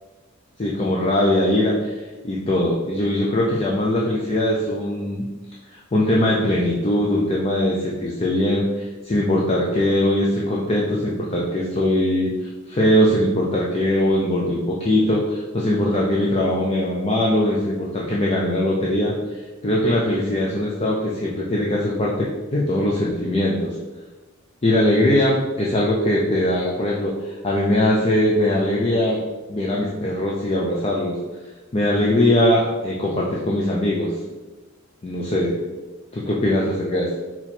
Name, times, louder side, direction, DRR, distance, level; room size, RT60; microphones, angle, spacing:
voice 1, 0.6-5.2 5.7-19.1 19.6-23.8 24.6-29.2 29.5-31.2 31.7-34.1 35.0-35.5 36.1-37.1, left 1 dB, 30° left, -3 dB, 0.5 m, -21 dB
4.3 x 2.9 x 4.3 m, 1.2 s
head